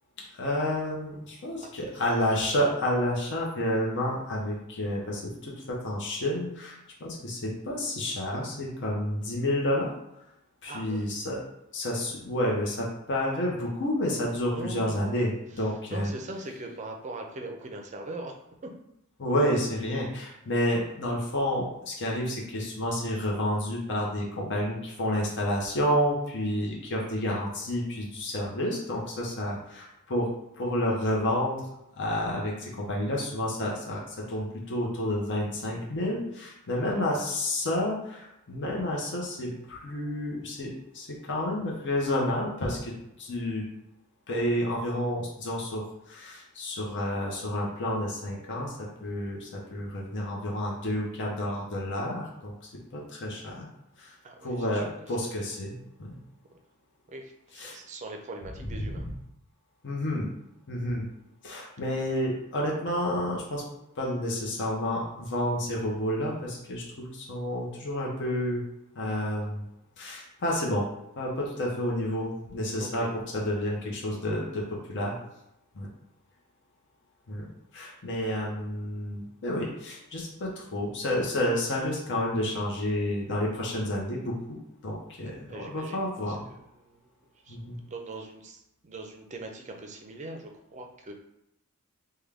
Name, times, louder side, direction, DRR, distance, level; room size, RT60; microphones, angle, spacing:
voice 1, 0.2-9.9 10.6-11.4 11.7-16.1 19.2-43.6 44.3-53.7 54.0-54.2 54.4-56.2 57.5-57.8 59.8-60.3 60.7-61.0 61.4-63.6 64.0-68.6 68.9-69.6 70.0-70.8 71.2-75.1 75.7-75.9 77.3-77.5 77.7-84.6 84.8-86.4 87.5-87.8, left 1 dB, 55° left, -2 dB, 0.7 m, -30 dB
voice 2, 10.7-11.1 14.5-15.1 15.9-18.3 18.6-18.7 36.7-36.8 54.2-54.8 55.2-55.3 57.1-59.1 73.0-73.1 85.2-86.4 86.8-87.0 87.4-91.1, right 2 dB, 35° right, 3 dB, 0.4 m, -41 dB
3.5 x 2.2 x 3.4 m, 0.82 s
head